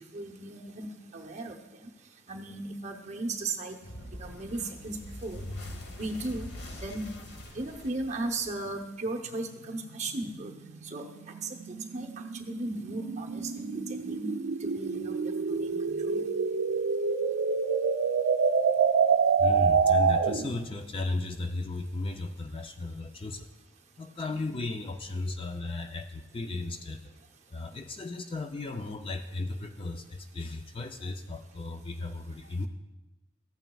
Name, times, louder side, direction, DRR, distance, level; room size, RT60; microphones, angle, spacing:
voice 1, 0.1-0.9 1.1-1.9 2.3-3.8 4.1-5.4 5.9-6.5 6.8-7.1 7.5-10.5 10.8-11.0 11.4-11.5 11.9-12.1 12.3-16.2 24.3-24.4, right 2 dB, 35° right, 3 dB, 0.7 m, -36 dB
sound 1, 3.8-9.0, left 1 dB, 55° left, 1.0 m, -43 dB
sound 2, 9.3-20.6, right 5 dB, 80° right, 0.4 m, -27 dB
voice 2, 19.4-23.5 24.0-27.1 27.5-32.7, left 2 dB, 25° left, 7 dB, 0.3 m, -35 dB
14.0 x 9.0 x 2.3 m, 1.0 s
head